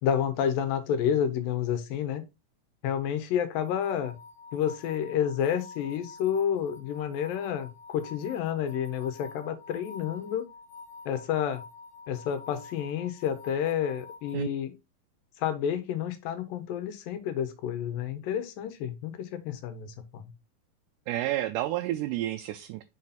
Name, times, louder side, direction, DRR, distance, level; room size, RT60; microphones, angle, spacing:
voice 1, 0.0-2.2 2.8-4.2 4.5-10.5 11.1-11.6 12.1-14.7 15.4-20.2, left 9 dB, 80° left, 2.6 m, -30 dB
sound 1, 3.5-14.4, left 4 dB, 60° left, 2.5 m, -48 dB
voice 2, 21.1-22.8, right 14 dB, 80° right, 1.9 m, -30 dB
6.2 x 4.2 x 4.0 m
omnidirectional pair, 4.0 m